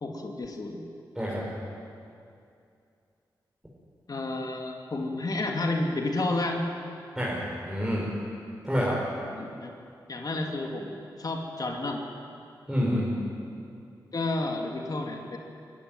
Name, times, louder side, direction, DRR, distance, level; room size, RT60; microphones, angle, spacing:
voice 1, 0.0-0.8 4.1-6.6 9.4-9.7 10.1-12.0 14.1-15.4, left 2 dB, 50° left, 2 dB, 2.7 m, -31 dB
voice 2, 7.2-8.2 8.6-9.0 12.7-13.2, equal, 5° right, -6 dB, 5.4 m, -28 dB
24.0 x 13.5 x 9.2 m, 2.5 s
cardioid pair, 50°, 8 cm